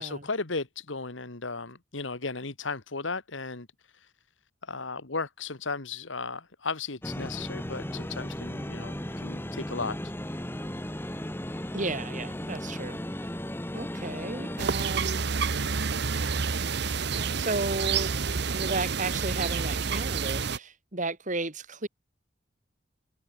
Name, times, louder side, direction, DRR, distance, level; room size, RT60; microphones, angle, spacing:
voice 1, 0.0-3.7 3.9-4.1 4.6-10.0, left 4 dB, 85° left, 2.0 m, -35 dB
sound 1, 7.0-14.7, equal, 10° left, 1.9 m, -36 dB
voice 2, 11.7-13.3 13.7-15.2 17.2-18.1 18.5-21.9, right 2 dB, 40° right, 2.9 m, -34 dB
sound 2, 14.6-20.6, right 5 dB, 60° right, 1.0 m, -29 dB
head